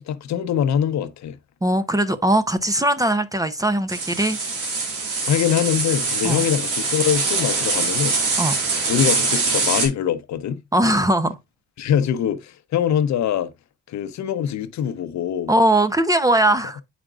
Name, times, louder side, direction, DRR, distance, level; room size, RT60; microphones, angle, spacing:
voice 1, 0.0-1.4 5.3-8.2 8.9-10.6 11.8-13.5 13.9-15.5, left 9 dB, 65° left, 0.8 m, -23 dB
voice 2, 1.6-4.4 6.2-6.4 8.4-8.5 10.7-11.4 15.5-16.8, right 1 dB, 10° right, 0.6 m, -20 dB
sound 1, 3.9-9.9, right 3 dB, 90° right, 2.3 m, -23 dB
8.7 x 5.0 x 2.4 m
cardioid pair, 90°, 30 cm